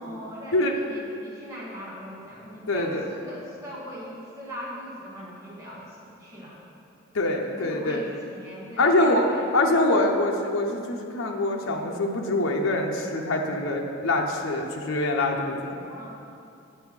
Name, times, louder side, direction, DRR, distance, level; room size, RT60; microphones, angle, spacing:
voice 1, 0.0-6.6 7.5-9.9 13.4-13.6 15.8-16.0, equal, 15° right, -7 dB, 1.7 m, -40 dB
voice 2, 2.7-3.1 7.1-8.0 8.8-9.3 9.5-15.8, left 2 dB, 85° left, 1 dB, 0.7 m, -24 dB
8.1 x 5.5 x 6.2 m, 2.6 s
head